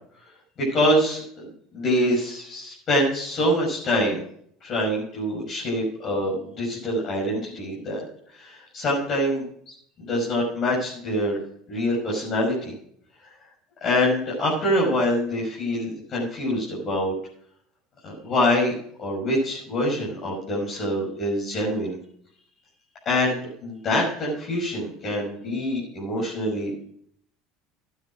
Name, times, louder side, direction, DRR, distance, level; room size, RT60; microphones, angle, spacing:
voice 1, 0.6-1.2 1.7-4.2 4.6-8.0 8.3-11.4 11.7-12.8 13.2-13.3 13.8-17.1 18.0-18.7 19.0-22.0 23.0-26.9, left 1 dB, 45° left, -4 dB, 6.1 m, -25 dB
12.5 x 9.6 x 4.9 m, 0.63 s
hypercardioid pair, 85°, 0 cm